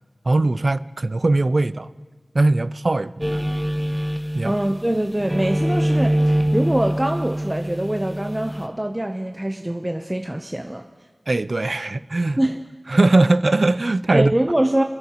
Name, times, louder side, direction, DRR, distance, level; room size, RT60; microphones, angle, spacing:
voice 1, 0.3-1.9 2.3-3.4 4.3-4.5 11.3-12.4 12.9-14.3, right 2 dB, 70° right, 0.3 m, -20 dB
sound 1, 3.2-4.9 5.2-8.7, equal, 5° right, 1.0 m, -23 dB
voice 2, 4.4-10.9 12.4-12.6 14.1-14.8, right 1 dB, 25° right, 0.6 m, -24 dB
28.5 x 10.5 x 2.9 m
wide cardioid pair, 40°, 0 cm